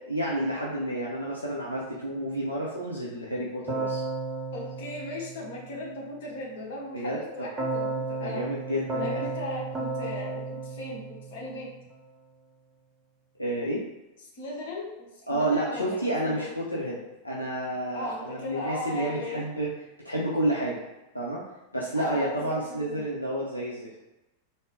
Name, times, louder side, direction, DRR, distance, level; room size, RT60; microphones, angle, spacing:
voice 1, 0.1-4.0 6.9-7.5 8.2-9.3 13.4-13.8 15.3-17.0 17.2-19.7 20.0-20.8 21.1-21.4 21.7-24.0, right 1 dB, 85° left, -5 dB, 0.6 m, -30 dB
Keyboard (musical), 3.7-6.0 7.6-11.9, right 3 dB, 15° right, 0.8 m, -33 dB
voice 2, 4.5-8.5 9.0-11.7 14.3-16.5 17.9-19.4 21.9-23.1, left 1 dB, 55° left, -3 dB, 1.0 m, -37 dB
3.7 x 2.0 x 3.6 m, 1.0 s
figure-of-eight pair, 90°, 0 cm